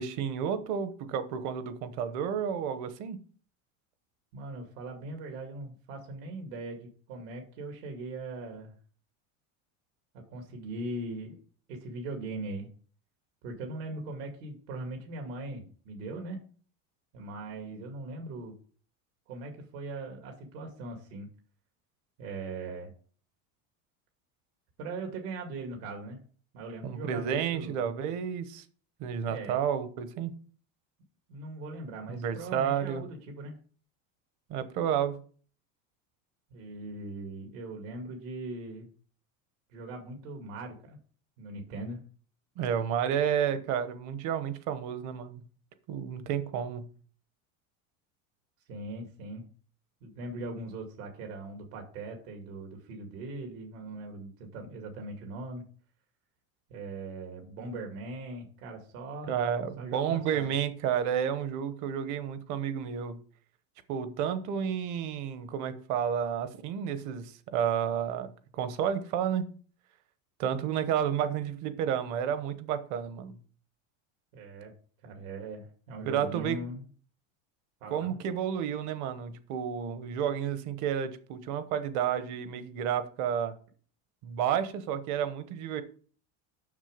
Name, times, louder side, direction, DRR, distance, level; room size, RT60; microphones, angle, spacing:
voice 1, 0.0-3.2 26.8-28.6 29.0-30.3 32.1-33.0 34.5-35.2 42.6-45.4 45.9-46.9 59.3-63.2 63.9-68.3 68.5-69.5 70.4-73.4 76.0-76.6 77.9-83.5 84.2-85.8, right 8 dB, 45° right, 1.1 m, -31 dB
voice 2, 4.3-8.7 10.1-11.4 11.7-12.7 13.4-16.4 17.1-18.6 19.3-21.3 22.2-22.9 24.8-26.2 26.5-27.8 29.3-29.6 31.3-33.5 36.5-38.9 39.7-41.0 41.4-42.0 48.7-49.5 50.0-55.6 56.7-59.3 59.8-60.6 74.3-74.7 75.0-76.8 77.8-78.1, right 2 dB, 75° right, 2.4 m, -40 dB
7.3 x 6.3 x 5.1 m
supercardioid pair, 160°, 40 cm